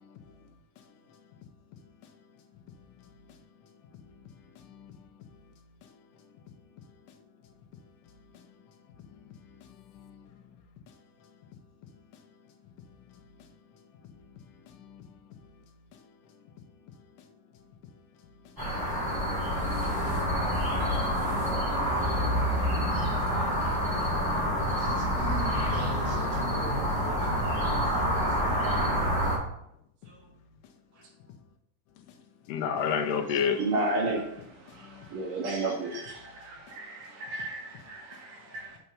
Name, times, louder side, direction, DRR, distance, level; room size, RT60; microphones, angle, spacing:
voice 1, 0.0-1.5 1.8-21.7 30.0-30.7 31.2-31.4 32.0-33.6 34.2-35.3 35.9-37.3 37.8-38.3 38.5-38.8, left 7 dB, 75° left, 2.2 m, -41 dB
sound 1, 18.6-29.4, equal, 10° right, 1.3 m, -27 dB
voice 2, 24.8-27.9 30.0-30.1, right 1 dB, 20° left, 0.4 m, -42 dB
voice 3, 33.7-34.2 35.1-36.2 37.3-37.6 37.9-38.0, right 2 dB, 80° right, 3.5 m, -29 dB
6.9 x 4.5 x 5.4 m
omnidirectional pair, 3.8 m